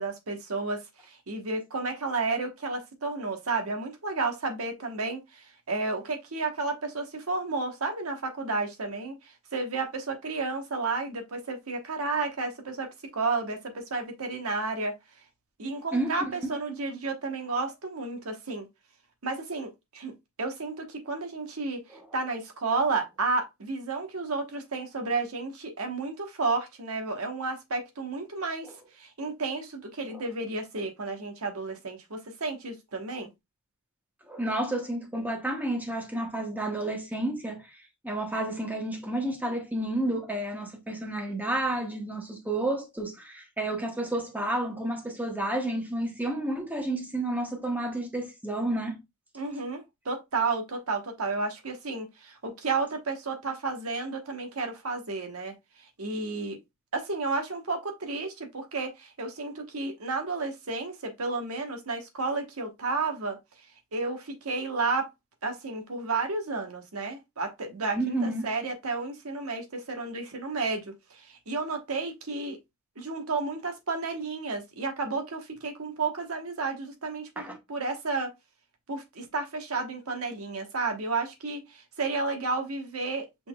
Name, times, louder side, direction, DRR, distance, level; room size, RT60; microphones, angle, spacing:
voice 1, 0.0-14.9 15.6-18.7 19.2-21.8 22.1-33.3 49.3-55.5 56.0-56.6 56.9-63.4 63.9-65.1 65.4-72.6 73.0-78.3 78.9-83.5, right 3 dB, 90° right, 1.2 m, -32 dB
voice 2, 15.9-16.5 21.9-22.0 28.6-28.7 30.1-30.2 34.3-37.7 38.0-49.0 67.9-68.5 77.4-77.6, right 1 dB, 10° right, 1.0 m, -31 dB
5.7 x 3.6 x 2.3 m
head